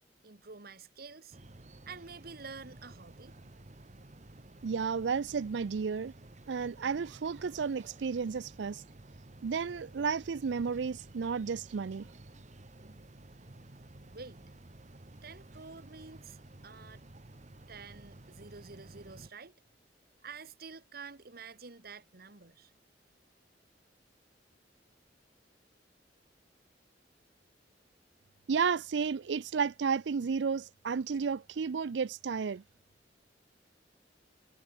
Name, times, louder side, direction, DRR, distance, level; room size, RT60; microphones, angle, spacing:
voice 1, 0.2-1.4 1.9-3.3 14.1-14.4 15.2-17.0 17.7-19.5 20.2-22.7, right 5 dB, 60° right, 1.6 m, -49 dB
sound 1, 1.3-19.3, right 2 dB, 40° right, 1.2 m, -53 dB
voice 2, 4.6-6.1 6.5-8.8 9.4-12.1 28.5-32.6, right 6 dB, 75° right, 0.4 m, -32 dB
head